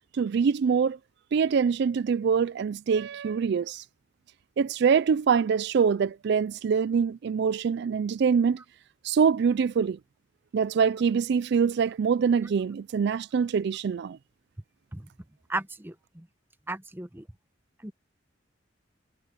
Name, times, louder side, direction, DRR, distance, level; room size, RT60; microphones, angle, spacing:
voice 1, 0.1-1.0 1.3-3.8 4.6-8.6 9.0-10.0 10.5-14.2, right 6 dB, 60° right, 0.4 m, -24 dB
voice 2, 15.5-16.3 16.7-17.3 17.8-17.9, right 2 dB, 10° right, 1.0 m, -35 dB
head